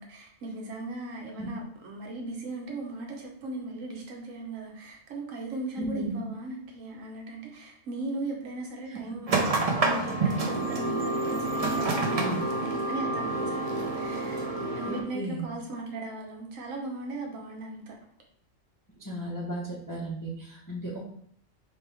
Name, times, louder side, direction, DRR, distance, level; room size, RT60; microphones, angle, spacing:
voice 1, 0.0-9.3 9.8-14.4 14.8-17.9, right 2 dB, 80° right, 0 dB, 1.2 m, -38 dB
voice 2, 5.8-6.2 8.9-9.0 12.2-12.4 14.8-15.5 19.0-21.1, right 1 dB, 20° left, -4 dB, 0.6 m, -35 dB
sound 1, 9.3-15.0, right 2 dB, 45° right, 0.5 m, -28 dB
4.5 x 3.1 x 3.3 m, 0.63 s
omnidirectional pair, 1.4 m